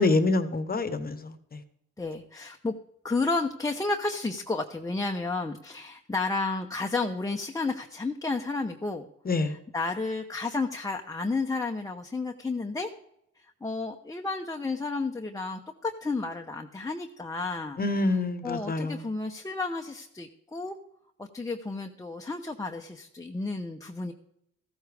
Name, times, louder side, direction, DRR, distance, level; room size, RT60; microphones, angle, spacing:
voice 1, 0.0-1.6 9.2-9.6 17.8-19.1, left 2 dB, 30° left, 11 dB, 1.1 m, -26 dB
voice 2, 2.0-2.7 3.0-9.1 9.4-12.9 13.6-17.8 18.4-20.8 21.2-24.1, left 3 dB, 10° left, 3 dB, 0.8 m, -32 dB
14.5 x 13.0 x 3.5 m, 0.77 s
cardioid pair, 90°, 30 cm